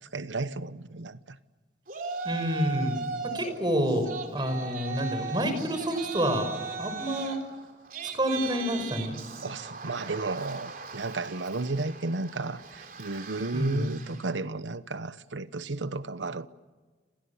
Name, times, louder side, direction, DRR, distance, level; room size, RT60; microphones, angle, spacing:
voice 1, 0.0-1.4 9.4-16.5, right 3 dB, 85° right, 1.1 m, -33 dB
Yell, 1.9-3.5 3.9-14.3, right 4 dB, 50° right, 3.7 m, -38 dB
voice 2, 2.2-2.9 3.2-4.1 4.3-6.5 6.8-7.4 8.1-9.2 13.5-13.9, equal, 25° right, 5.5 m, -28 dB
29.0 x 28.0 x 7.2 m
head